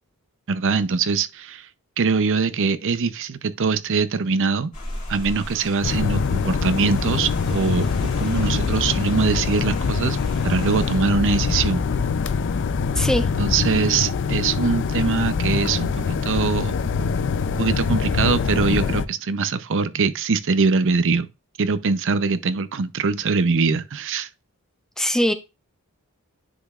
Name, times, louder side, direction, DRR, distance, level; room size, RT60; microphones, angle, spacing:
voice 1, 0.5-1.7 2.0-4.7 5.1-10.2 10.4-11.8 13.4-16.8 17.6-21.3 21.6-24.3, right 4 dB, 60° right, 0.6 m, -22 dB
Rain, 4.7-11.0, left 1 dB, 35° left, 2.4 m, -37 dB
sound 1, 5.8-19.0, left 5 dB, 55° left, 0.5 m, -24 dB
voice 2, 12.9-13.3 25.0-25.3, equal, ahead, 0.5 m, -20 dB
10.0 x 5.1 x 2.4 m
head